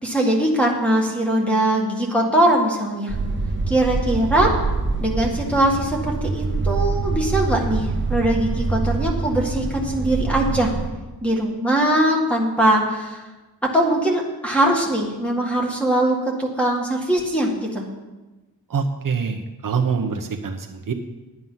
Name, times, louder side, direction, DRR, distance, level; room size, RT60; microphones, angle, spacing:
voice 1, 0.0-3.2 3.7-4.5 5.0-10.7 11.2-13.2 13.7-17.9, right 1 dB, 5° left, -1 dB, 1.8 m, -21 dB
sound 1, 3.1-10.9, right 3 dB, 30° right, 1.0 m, -25 dB
voice 2, 18.7-20.9, right 5 dB, 55° right, 4 dB, 0.8 m, -25 dB
11.0 x 9.3 x 5.6 m, 1.1 s
wide cardioid pair, 170°, 39 cm